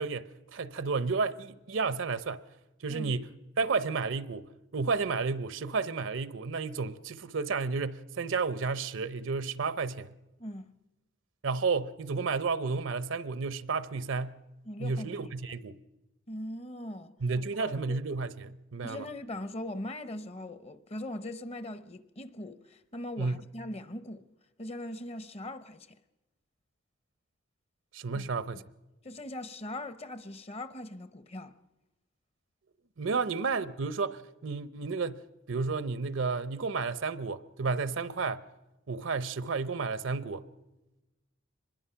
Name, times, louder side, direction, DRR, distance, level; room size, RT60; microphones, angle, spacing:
voice 1, 0.0-2.4 2.8-3.3 3.6-10.1 11.4-14.4 14.8-15.8 17.2-19.1 23.2-23.4 27.9-28.6 33.0-35.2 35.5-38.4 38.9-40.4, right 4 dB, 70° right, 0.7 m, -32 dB
voice 2, 14.6-15.3 16.3-17.1 17.6-18.0 18.8-24.3 24.6-26.0 28.1-28.3 29.0-31.6 33.1-33.2, left 1 dB, 30° left, 0.8 m, -40 dB
24.5 x 21.0 x 5.7 m
head